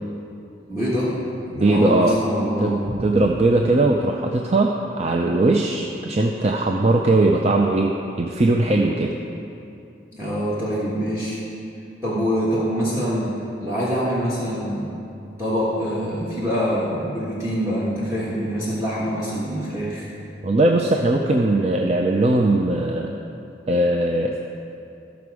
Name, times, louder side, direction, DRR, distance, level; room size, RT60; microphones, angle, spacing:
voice 1, 0.7-1.2 1.5-3.0 10.1-11.4 12.0-13.3 13.6-14.9 15.4-20.1, equal, 15° right, -8 dB, 1.4 m, -24 dB
voice 2, 1.6-2.2 2.6-4.7 5.0-9.1 20.4-23.1 23.7-24.4, right 2 dB, 35° right, 1 dB, 0.4 m, -19 dB
14.0 x 6.0 x 4.8 m, 2.7 s
head